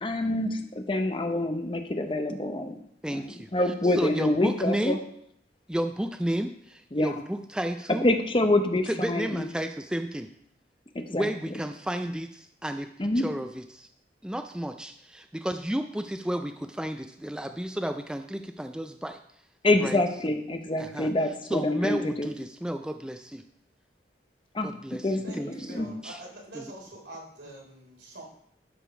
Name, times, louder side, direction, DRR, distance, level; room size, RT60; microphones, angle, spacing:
voice 1, 0.0-2.8 3.1-5.0 6.9-7.2 8.0-9.5 10.9-11.3 13.0-13.3 19.6-22.3 24.5-26.0, left 1 dB, 30° left, 6 dB, 0.7 m, -26 dB
voice 2, 3.0-3.5 4.0-5.0 5.7-8.1 8.9-10.3 11.1-13.9 14.2-19.2 19.8-20.0 20.8-21.1 21.5-23.4 24.6-26.2 26.5-26.7, right 1 dB, 5° right, 7 dB, 0.3 m, -32 dB
voice 3, 25.2-28.2, right 2 dB, 75° right, -1 dB, 3.4 m, -45 dB
12.0 x 5.1 x 5.0 m, 0.69 s
head